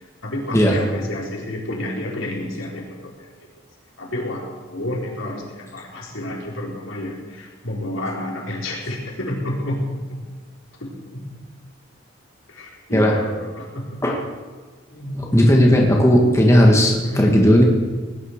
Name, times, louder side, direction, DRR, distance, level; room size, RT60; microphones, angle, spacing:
voice 1, 0.2-3.3 4.0-10.2 10.8-11.4 12.5-14.0 14.9-15.3 16.7-17.3, left 1 dB, 85° left, -2 dB, 4.4 m, -30 dB
voice 2, 15.2-17.6, equal, 15° left, -1 dB, 1.9 m, -15 dB
19.0 x 11.0 x 6.6 m, 1.4 s
head